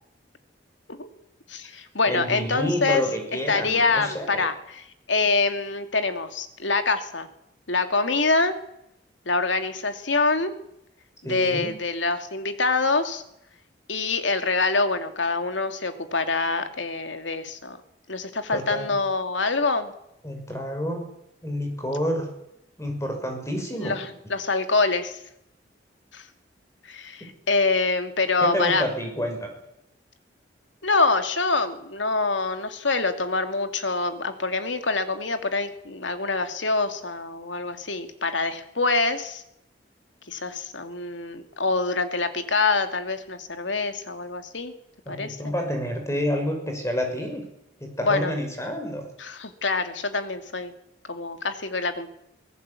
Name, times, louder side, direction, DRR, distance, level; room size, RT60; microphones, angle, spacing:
voice 1, 1.5-3.0 3.5-7.3 7.7-8.5 9.3-10.5 11.2-13.2 13.9-17.8 18.1-19.9 23.7-25.2 26.1-26.2 26.8-28.8 30.8-39.4 40.3-44.7 45.1-45.5 48.0-48.3 49.2-50.7 51.1-52.1, left 3 dB, 85° left, 8 dB, 2.5 m, -25 dB
voice 2, 2.1-4.5 11.2-11.8 18.5-19.0 20.2-21.1 21.4-22.3 22.8-24.0 28.4-29.5 45.1-47.5 47.8-49.1, equal, 15° left, 4 dB, 6.0 m, -29 dB
24.0 x 18.0 x 8.4 m, 0.81 s
head